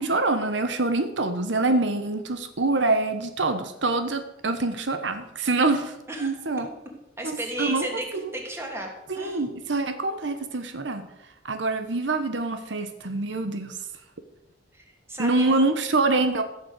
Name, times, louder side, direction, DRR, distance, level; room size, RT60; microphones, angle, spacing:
voice 1, 0.0-6.7 7.2-7.9 8.1-8.3 9.1-11.1 11.4-13.8 15.2-16.4, right 3 dB, 70° right, 8 dB, 1.2 m, -25 dB
voice 2, 7.2-9.6 14.7-15.6, right 1 dB, 15° right, 0 dB, 2.9 m, -35 dB
15.0 x 7.0 x 8.2 m, 0.92 s
head